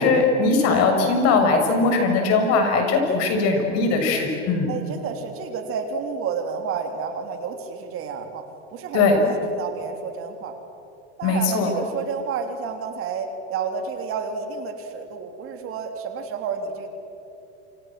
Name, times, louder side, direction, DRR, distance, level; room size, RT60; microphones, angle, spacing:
voice 1, 0.0-4.7 8.9-9.2 11.2-11.7, left 4 dB, 45° left, 4 dB, 6.8 m, -20 dB
voice 2, 4.7-8.4 8.7-10.6 11.2-16.9, right 5 dB, 40° right, 5 dB, 3.4 m, -30 dB
28.5 x 27.0 x 7.7 m, 2.7 s
supercardioid pair, 135°, 34 cm